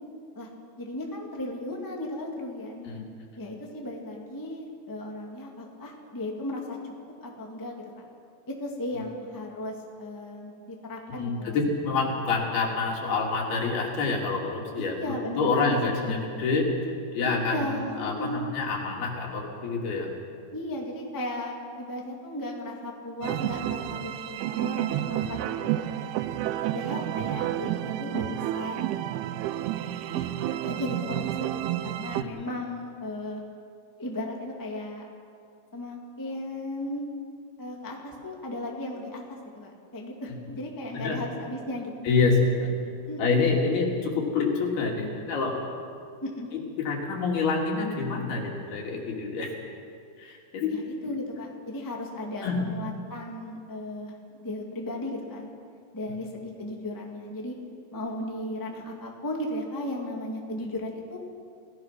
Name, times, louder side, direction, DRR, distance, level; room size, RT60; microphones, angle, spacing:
voice 1, 0.8-2.9 3.4-6.8 7.2-8.1 8.5-11.6 14.8-15.8 17.2-18.4 20.5-25.4 25.7-26.1 26.7-29.3 30.1-30.3 30.6-31.5 31.8-33.4 34.0-35.1 35.7-37.0 37.6-41.9 43.1-43.5 46.2-46.5 50.7-54.1 54.4-55.6 55.9-57.6 57.9-61.2, left 1 dB, 10° left, -1 dB, 1.5 m, -36 dB
voice 2, 11.2-15.0 15.3-16.7 17.1-20.1 32.1-32.4 40.3-40.4 40.9-41.2 42.0-42.7 43.2-45.6 46.5-49.5 50.2-50.7 51.0-51.1 52.4-52.6 56.1-56.2, left 4 dB, 70° left, 0 dB, 4.5 m, -27 dB
sound 1, 23.2-32.2, right 12 dB, 80° right, 2.5 m, -30 dB
28.0 x 17.5 x 6.0 m, 2.3 s
omnidirectional pair, 4.8 m